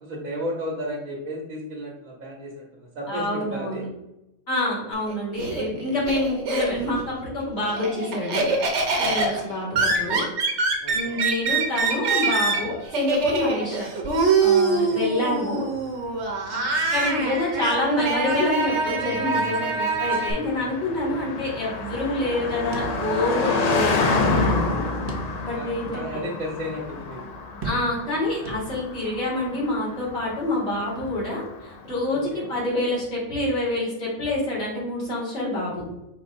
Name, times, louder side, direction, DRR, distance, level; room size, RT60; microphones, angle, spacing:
voice 1, 0.0-3.8 9.0-9.4 10.8-11.2 14.7-15.0 21.0-21.4 25.5-27.2 32.1-32.5, equal, 90° right, -3 dB, 1.4 m, -34 dB
voice 2, 3.1-3.9 4.5-8.5 9.0-10.2 10.9-13.9 14.4-15.7 16.5-16.6 16.9-24.8 25.4-26.2 27.6-35.9, left 1 dB, 55° left, -7 dB, 2.2 m, -27 dB
Laughter, 4.9-7.0 7.4-20.3, right 3 dB, 60° right, 1.1 m, -24 dB
Car passing by, 15.7-32.2, left 3 dB, 85° left, 0.3 m, -29 dB
sound 1, 22.7-23.6 23.9-24.0 25.1-25.7 26.2-26.3 27.6-28.2 28.5-29.1, right 2 dB, 45° right, 0.8 m, -36 dB
4.6 x 4.5 x 2.6 m, 0.90 s
omnidirectional pair, 1.4 m